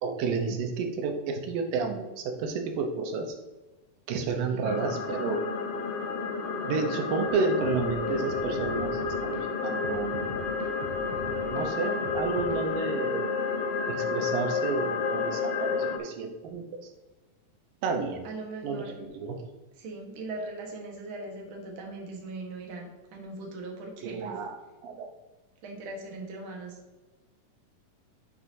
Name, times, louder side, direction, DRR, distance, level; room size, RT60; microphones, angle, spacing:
voice 1, 0.0-3.3 4.1-5.4 6.6-10.3 11.5-13.4 13.9-16.8 17.8-18.3 18.6-19.4 24.0-24.5 24.8-25.1, right 4 dB, 90° right, 4 dB, 2.7 m, -31 dB
voice 2, 4.3-4.8 18.2-19.0 19.2-19.4 19.7-24.4 25.6-26.8, right 2 dB, 50° right, 1 dB, 1.6 m, -40 dB
sound 1, 4.6-16.0, left 5 dB, 85° left, 2.5 m, -31 dB
sound 2, 7.6-9.4 9.8-12.8, right 5 dB, 70° right, 1.7 m, -43 dB
8.7 x 6.3 x 2.7 m, 1.2 s
omnidirectional pair, 3.8 m